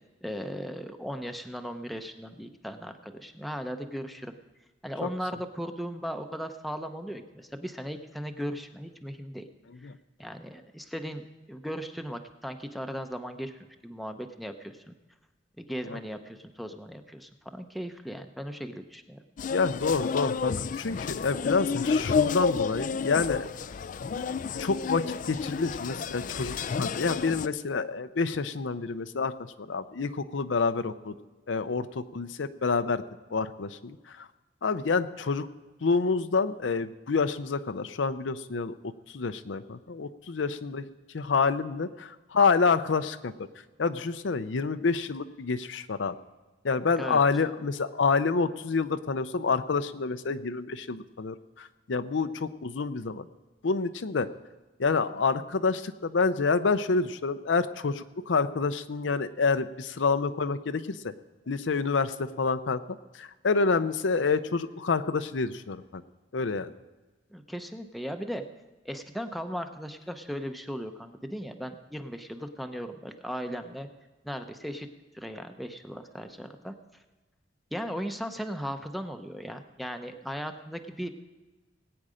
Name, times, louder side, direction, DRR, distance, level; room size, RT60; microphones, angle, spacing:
voice 1, 0.2-4.4 4.8-9.5 10.2-14.9 15.6-19.2 47.0-47.2 67.3-68.4 68.8-73.9 74.2-74.9 75.1-76.7 77.7-81.1, equal, ahead, 6 dB, 0.7 m, -37 dB
sound 1, 19.4-27.5, left 5 dB, 45° left, 0.3 m, -30 dB
voice 2, 19.5-23.4 24.6-25.0 25.3-29.3 29.6-31.1 31.5-33.0 33.3-34.3 34.6-35.5 35.8-40.9 41.1-43.5 43.8-46.1 46.6-53.3 53.6-54.3 54.8-61.1 61.5-66.0 66.3-66.7, left 4 dB, 85° left, 11 dB, 0.6 m, -28 dB
19.5 x 8.7 x 5.0 m, 1.2 s
head